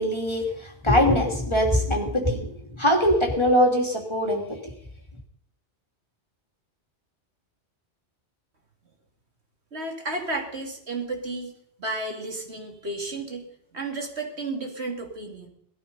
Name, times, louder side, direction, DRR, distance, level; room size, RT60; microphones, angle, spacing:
voice 1, 0.0-4.7, equal, 25° left, 2 dB, 2.9 m, -22 dB
voice 2, 9.7-11.5 11.8-13.4 13.7-15.5, right 2 dB, 65° right, 2 dB, 3.0 m, -32 dB
19.0 x 13.0 x 5.5 m, 0.71 s
omnidirectional pair, 1.2 m